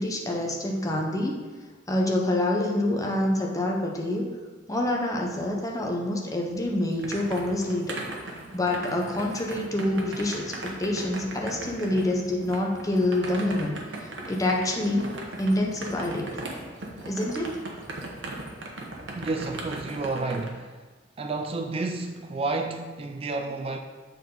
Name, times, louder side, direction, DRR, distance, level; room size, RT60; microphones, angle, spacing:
voice 1, 0.0-1.3 1.9-4.3 4.7-8.0 8.5-13.8 14.3-15.1 15.4-16.3 17.0-17.5, left 1 dB, 20° left, -1 dB, 0.8 m, -26 dB
sound 1, 6.5-20.5, right 2 dB, 85° right, 1.0 m, -38 dB
voice 2, 19.1-20.9 21.2-23.8, right 3 dB, 30° right, 5 dB, 0.3 m, -31 dB
7.4 x 4.5 x 3.9 m, 1.4 s
head